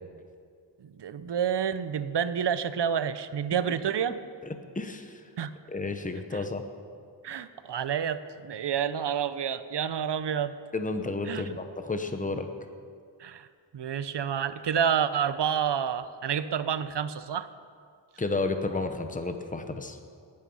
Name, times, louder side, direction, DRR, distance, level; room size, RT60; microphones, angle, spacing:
voice 1, 0.8-4.2 5.4-5.5 7.2-10.5 11.3-11.6 13.2-13.5 13.7-17.5, right 8 dB, 65° right, 13 dB, 0.7 m, -29 dB
voice 2, 4.4-5.2 5.7-6.6 10.7-12.5 18.2-20.0, left 3 dB, 20° left, 7 dB, 0.9 m, -32 dB
18.5 x 8.9 x 5.5 m, 2.2 s
wide cardioid pair, 115°, 44 cm